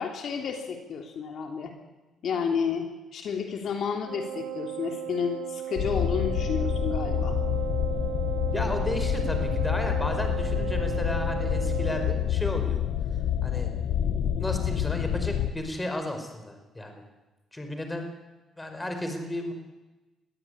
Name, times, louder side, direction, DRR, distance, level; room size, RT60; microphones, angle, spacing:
voice 1, 0.0-1.7 2.2-7.4, left 6 dB, 65° left, 4 dB, 3.3 m, -31 dB
Wind instrument woodwind instrument, 4.0-12.2, right 11 dB, 90° right, 2.9 m, -35 dB
sound 1, 5.8-15.5, left 10 dB, 80° left, 1.3 m, -28 dB
voice 2, 8.5-12.8 13.4-13.7 14.4-17.0 17.5-18.1 18.6-19.5, left 1 dB, 15° left, 5 dB, 5.2 m, -33 dB
22.5 x 15.5 x 9.9 m, 1.1 s
cardioid pair, 90°, 0 cm